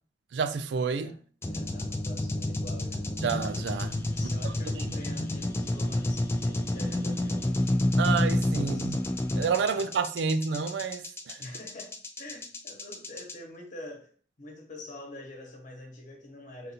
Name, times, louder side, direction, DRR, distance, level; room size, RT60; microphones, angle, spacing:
voice 1, 0.3-1.1 3.2-4.1 4.4-4.7 8.0-9.0 9.3-11.4, right 5 dB, 70° right, 0.3 m, -29 dB
voice 2, 0.9-3.1 4.1-7.7 7.9-8.2 8.5-9.0 9.7-9.9 11.4-14.1 14.4-16.7, left 1 dB, 45° left, 1.1 m, -45 dB
sound 1, 1.4-13.3, left 1 dB, 15° left, 0.4 m, -29 dB
3.8 x 2.6 x 4.1 m
head